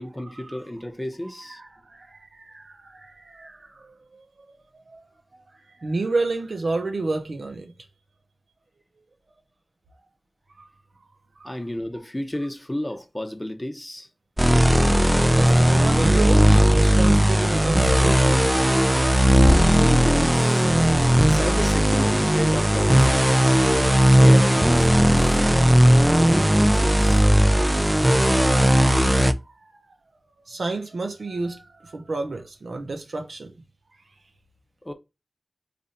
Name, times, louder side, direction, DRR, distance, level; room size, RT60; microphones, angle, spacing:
voice 1, 0.0-1.6 11.4-14.1 19.8-20.7 21.2-23.3 24.2-25.5 26.0-27.3 34.8-34.9, left 1 dB, 20° left, 0.7 m, -32 dB
voice 2, 1.5-4.3 4.7-5.1 5.5-7.7 10.6-10.7 11.4-11.5 15.3-18.5 18.9-19.4 25.7-25.9 28.7-29.6 30.5-33.5, right 3 dB, 85° right, 0.7 m, -31 dB
sound 1, 14.4-29.3, equal, 15° right, 0.4 m, -17 dB
3.3 x 2.6 x 4.0 m
wide cardioid pair, 50°, 0 cm